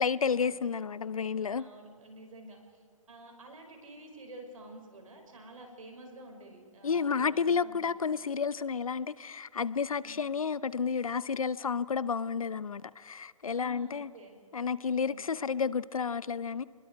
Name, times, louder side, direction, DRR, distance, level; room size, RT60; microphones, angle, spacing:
voice 1, 0.0-1.6 6.8-14.1 14.5-16.6, left 6 dB, 90° left, 0.7 m, -31 dB
voice 2, 1.6-2.8 3.1-7.8 8.0-8.2 10.0-10.2 13.5-14.4 15.1-15.3, right 2 dB, 80° right, 5.8 m, -50 dB
27.5 x 21.0 x 4.7 m
hypercardioid pair, 140°, 17 cm